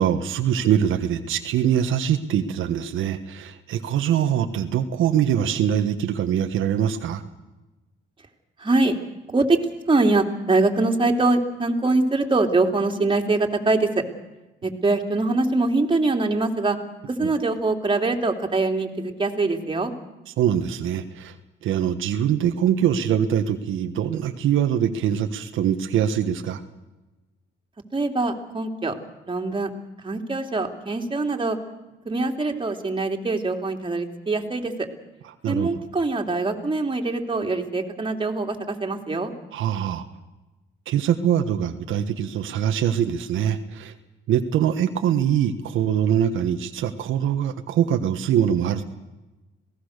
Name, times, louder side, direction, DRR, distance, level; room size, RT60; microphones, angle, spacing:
voice 1, 0.0-7.2 17.2-17.3 20.4-21.3 21.6-26.6 35.4-35.7 39.5-40.0 40.9-43.9 44.3-48.8, right 9 dB, 80° right, 6 dB, 1.4 m, -23 dB
voice 2, 8.6-8.9 9.3-9.6 9.9-14.0 14.6-16.8 17.1-19.9 27.9-28.9 29.3-29.7 30.0-31.6 32.0-34.9 35.5-39.3, right 3 dB, 25° right, 3 dB, 3.0 m, -23 dB
27.0 x 18.0 x 6.6 m, 1.1 s
cardioid pair, 90°, 20 cm